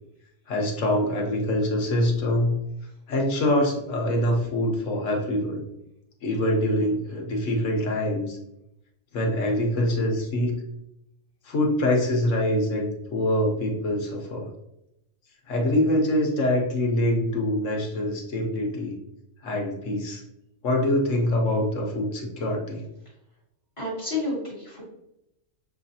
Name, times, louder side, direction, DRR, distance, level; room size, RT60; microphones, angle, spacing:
voice 1, 0.5-2.6 3.1-5.6 6.2-8.4 9.1-10.5 11.4-14.5 15.5-19.0 19.4-20.2 20.6-22.8, left 1 dB, 75° left, 0 dB, 1.3 m, -24 dB
voice 2, 23.8-24.8, left 2 dB, 25° left, -6 dB, 1.5 m, -30 dB
6.9 x 2.4 x 2.7 m, 0.83 s
omnidirectional pair, 1.3 m